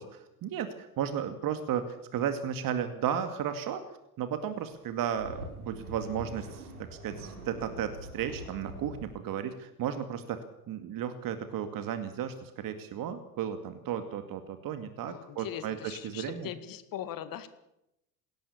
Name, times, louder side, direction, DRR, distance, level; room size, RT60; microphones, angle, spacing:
voice 1, 0.0-3.8 4.2-15.8 16.0-16.5, right 9 dB, 50° right, 9 dB, 2.2 m, -34 dB
sound 1, 4.8-9.1, right 1 dB, 90° right, 4.6 m, -44 dB
voice 2, 15.1-17.5, left 10 dB, 50° left, 11 dB, 2.2 m, -40 dB
20.5 x 18.0 x 7.2 m, 0.85 s
hypercardioid pair, 70°, 44 cm